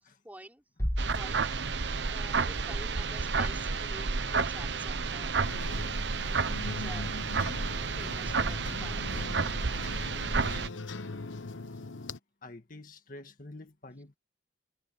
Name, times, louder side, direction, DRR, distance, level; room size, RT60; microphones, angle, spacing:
voice 1, 0.2-0.6 1.1-5.4 6.5-7.1 7.8-9.4 10.9-11.0, right 1 dB, 10° right, 3.8 m, -49 dB
Bass drum, 0.8-2.5, equal, 15° left, 2.4 m, -35 dB
sound 1, 1.0-10.7, right 4 dB, 65° right, 0.9 m, -31 dB
sound 2, 5.4-12.2, left 3 dB, 90° left, 1.0 m, -41 dB
voice 2, 12.4-14.2, left 2 dB, 45° left, 1.9 m, -48 dB
head